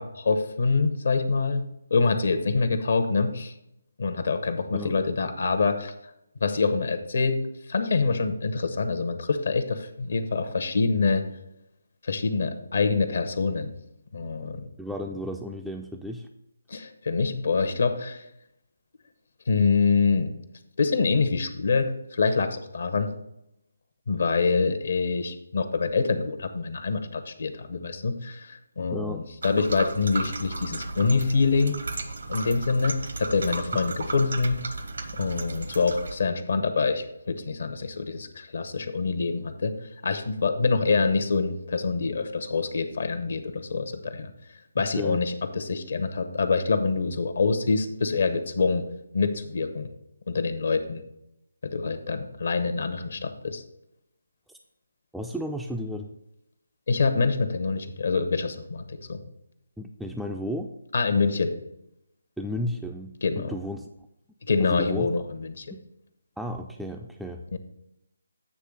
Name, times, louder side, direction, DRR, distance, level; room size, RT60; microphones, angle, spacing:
voice 1, 0.0-1.6 1.9-3.5 4.0-5.9 6.4-7.4 7.7-11.2 12.0-13.7 14.1-14.7 16.7-18.2 19.5-20.3 20.8-23.1 24.1-31.8 32.3-34.6 35.1-39.7 40.0-44.3 44.7-48.8 49.1-49.9 50.3-51.0 51.6-53.6 56.9-59.2 60.9-61.5 63.2-63.5 64.5-65.7 67.5-67.6, left 4 dB, 60° left, 8 dB, 0.8 m, -25 dB
voice 2, 14.8-16.3 28.9-29.2 45.0-45.2 55.1-56.2 59.8-60.7 62.4-63.9 64.6-65.1 65.7-65.8 66.4-67.6, equal, ahead, 1 dB, 0.3 m, -33 dB
sound 1, 29.4-36.1, right 3 dB, 70° right, 0.9 m, -34 dB
8.4 x 3.2 x 6.4 m, 0.83 s
figure-of-eight pair, 155°, 0 cm